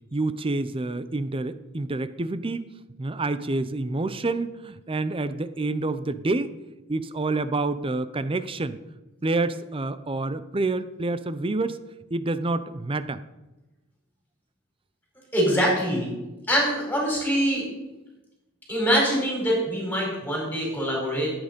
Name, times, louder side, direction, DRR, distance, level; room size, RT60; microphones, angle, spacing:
voice 1, 0.1-2.7 3.0-6.5 6.9-8.8 9.2-11.8 12.1-13.2, right 2 dB, 25° right, 13 dB, 0.6 m, -28 dB
voice 2, 15.3-16.1 16.5-17.7 18.7-21.3, equal, 10° left, -2 dB, 4.6 m, -24 dB
14.5 x 8.9 x 5.2 m, 1.0 s
head